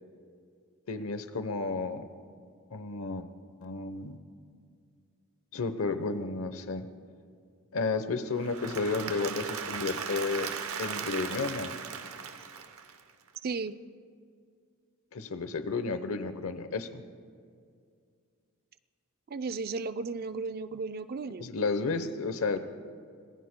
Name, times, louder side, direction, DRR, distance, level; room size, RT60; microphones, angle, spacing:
voice 1, 0.9-2.1 2.7-3.3 3.6-4.2 5.5-6.9 7.7-10.5 10.8-11.8 15.1-17.0 21.4-22.6, left 4 dB, 70° left, 10 dB, 0.9 m, -32 dB
Applause / Crowd, 8.3-13.3, right 6 dB, 75° right, 0.9 m, -37 dB
voice 2, 13.4-13.7 19.3-21.5, right 4 dB, 45° right, 11 dB, 0.4 m, -34 dB
26.0 x 19.5 x 2.2 m, 2.2 s
head